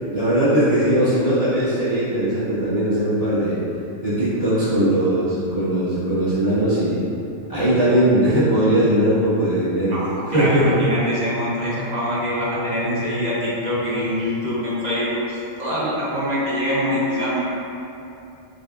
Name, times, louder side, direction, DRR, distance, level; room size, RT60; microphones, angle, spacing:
voice 1, 0.1-3.6 4.0-7.0 7.5-10.0 10.3-10.8, right 1 dB, 25° right, -13 dB, 1.5 m, -19 dB
voice 2, 9.9-17.4, equal, 40° right, -8 dB, 0.6 m, -24 dB
7.0 x 2.5 x 2.4 m, 2.8 s
omnidirectional pair, 1.5 m